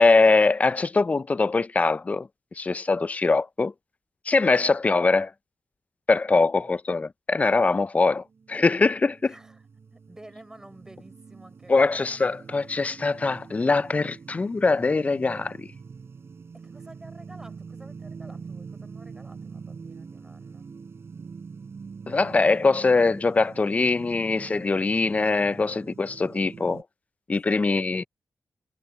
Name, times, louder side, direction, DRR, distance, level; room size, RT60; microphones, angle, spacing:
voice 1, 0.0-2.3 2.6-3.7 4.3-5.3 6.1-9.3 11.7-15.7 22.1-26.8 27.3-28.0, left 3 dB, 25° left, 0.4 m, -22 dB
voice 2, 6.3-6.7 9.2-9.7 9.9-12.4 16.5-20.7 27.4-28.1, right 1 dB, 10° right, 3.9 m, -50 dB
sound 1, 8.2-26.8, right 5 dB, 50° right, 4.7 m, -44 dB
wide cardioid pair, 140°, 6 cm